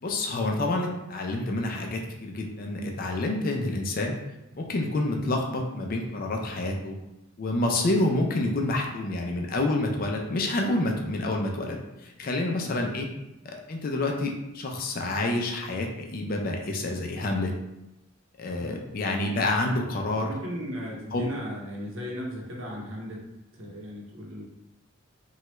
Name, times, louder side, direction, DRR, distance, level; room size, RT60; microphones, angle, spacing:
voice 1, 0.0-4.2 4.6-7.0 7.4-13.1 13.5-17.5 18.4-20.3 21.1-21.3, left 2 dB, 45° left, 1 dB, 0.4 m, -28 dB
voice 2, 20.2-23.2 23.6-24.4, equal, 70° right, -2 dB, 0.8 m, -36 dB
3.1 x 2.3 x 3.0 m, 0.93 s
head